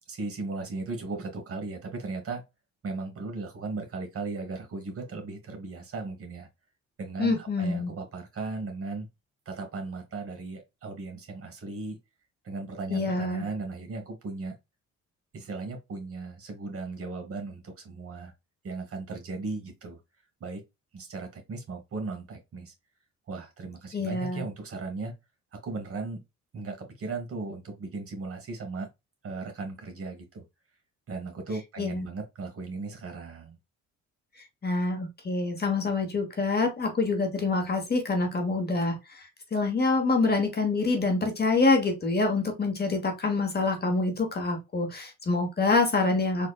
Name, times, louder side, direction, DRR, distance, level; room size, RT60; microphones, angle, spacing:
voice 1, 0.1-2.4 2.8-6.5 7.0-9.1 9.4-12.0 12.4-14.5 15.3-18.3 18.6-20.0 20.4-20.6 20.9-22.7 23.3-25.1 25.5-26.2 26.5-28.9 29.2-30.4 31.1-33.6, right 3 dB, 50° right, 1.5 m, -36 dB
voice 2, 7.2-7.9 12.9-13.4 23.9-24.4 31.8-32.1 34.6-39.2 39.5-46.5, left 3 dB, 30° left, 1.2 m, -26 dB
4.2 x 2.5 x 2.3 m
cardioid pair, 90°, 30 cm